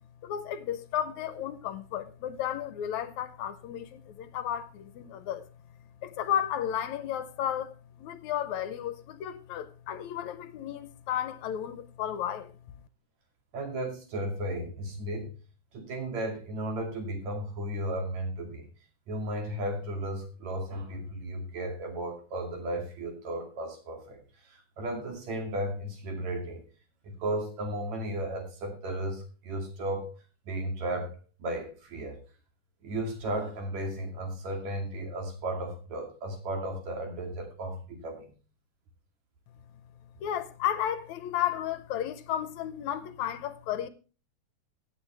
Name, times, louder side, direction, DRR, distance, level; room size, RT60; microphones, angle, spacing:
voice 1, 0.2-5.5 6.0-12.5 40.2-43.9, left 10 dB, 75° left, 2.0 m, -33 dB
voice 2, 13.5-15.3 15.7-18.7 19.1-26.6 27.0-30.1 30.5-31.1 31.4-32.2 32.8-38.3, right 1 dB, 65° right, 3.7 m, -34 dB
16.0 x 8.7 x 3.3 m
omnidirectional pair, 3.5 m